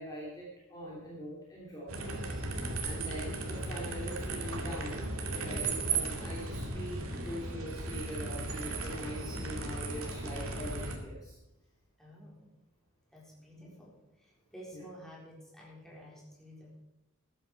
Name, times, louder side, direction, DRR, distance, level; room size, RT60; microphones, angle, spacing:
voice 1, 0.0-5.1 5.4-11.4 13.5-13.7 14.7-14.8, equal, 15° left, -5 dB, 3.0 m, -43 dB
sound 1, 1.9-11.0, right 3 dB, 75° right, 2.3 m, -36 dB
voice 2, 5.6-6.1 12.0-12.5 13.1-16.8, equal, ahead, -4 dB, 4.0 m, -52 dB
14.0 x 11.5 x 4.7 m, 0.94 s
head